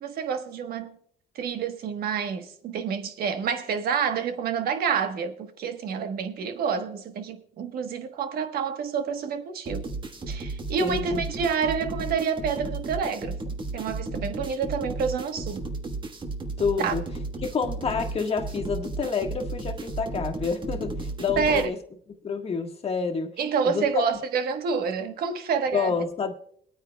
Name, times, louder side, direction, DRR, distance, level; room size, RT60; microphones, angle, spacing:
voice 1, 0.0-1.0 1.3-9.9 10.3-13.4 13.7-15.6 16.8-16.9 21.4-21.7 23.4-25.9, right 6 dB, 65° right, 1.2 m, -28 dB
sound 1, 9.7-21.7, right 2 dB, 30° right, 1.4 m, -34 dB
voice 2, 10.8-11.2 16.6-17.0 17.4-21.8 22.2-23.3 23.6-24.0 25.7-26.3, left 5 dB, 35° left, 1.5 m, -28 dB
23.0 x 9.2 x 2.3 m
cardioid pair, 110°, 17 cm